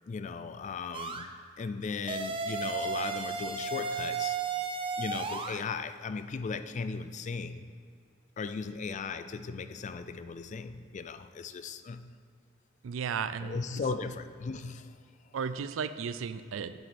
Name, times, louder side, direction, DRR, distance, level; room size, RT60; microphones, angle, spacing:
voice 1, 0.1-1.3 1.6-4.4 5.0-7.7 8.4-12.1 13.4-15.0 15.6-15.7, left 5 dB, 40° left, 11 dB, 0.3 m, -37 dB
sound 1, 0.9-1.3 2.1-5.6, right 5 dB, 25° right, 0.5 m, -34 dB
voice 2, 12.8-13.6 15.3-16.7, right 6 dB, 85° right, 13 dB, 0.4 m, -34 dB
7.7 x 7.7 x 4.2 m, 2.2 s
head